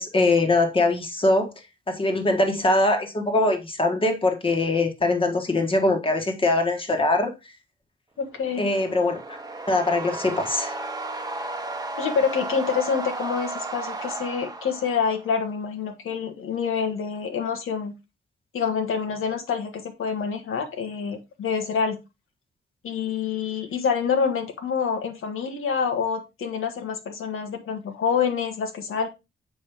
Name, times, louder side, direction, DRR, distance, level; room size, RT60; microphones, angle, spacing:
voice 1, 0.0-1.5 1.9-7.3 8.6-9.4 9.7-10.7, left 2 dB, 25° left, 1.5 m, -22 dB
voice 2, 8.2-8.7 12.0-17.9 18.5-22.0 22.8-29.1, left 6 dB, 85° left, 1.6 m, -27 dB
sound 1, 8.3-15.4, right 2 dB, 20° right, 0.9 m, -34 dB
7.2 x 5.0 x 3.5 m
wide cardioid pair, 150°, 21 cm